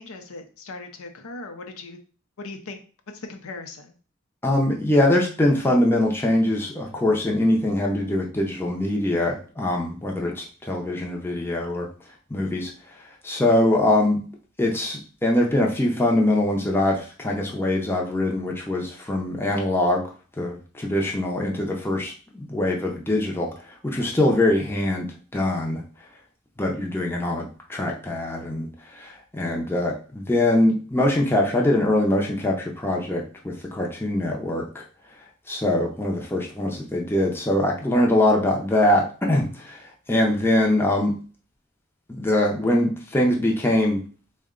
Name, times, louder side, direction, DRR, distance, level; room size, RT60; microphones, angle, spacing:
voice 1, 0.0-2.0 2.4-2.8 3.1-4.0, left 3 dB, 85° left, 5 dB, 0.6 m, -38 dB
voice 2, 4.4-11.9 12.3-14.2 14.6-20.0 20.4-25.8 26.6-34.8 35.5-41.2 42.1-44.0, left 1 dB, 10° left, -1 dB, 0.5 m, -23 dB
3.7 x 2.1 x 3.6 m, 0.39 s
head